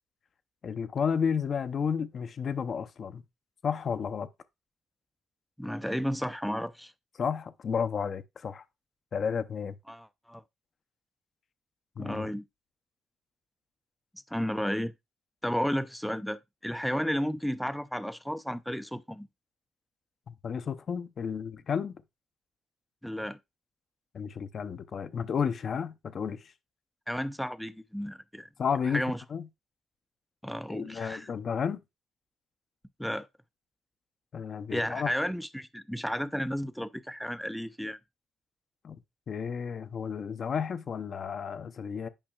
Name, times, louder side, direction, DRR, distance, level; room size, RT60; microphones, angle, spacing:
voice 1, 0.6-3.2 3.6-4.3 7.2-8.6 9.1-9.8 12.0-12.3 20.3-22.0 24.1-26.5 28.6-29.0 29.3-29.4 30.7-31.8 34.3-35.1 38.8-39.0 39.3-42.1, left 6 dB, 50° left, 0.6 m, -32 dB
voice 2, 5.6-6.9 9.9-10.4 12.0-12.5 14.3-14.9 15.4-19.3 23.0-23.4 27.1-28.5 28.9-29.2 30.4-31.3 33.0-33.3 34.7-38.0, equal, ahead, 0.5 m, -33 dB
8.8 x 5.4 x 2.3 m
cardioid pair, 90°, 0 cm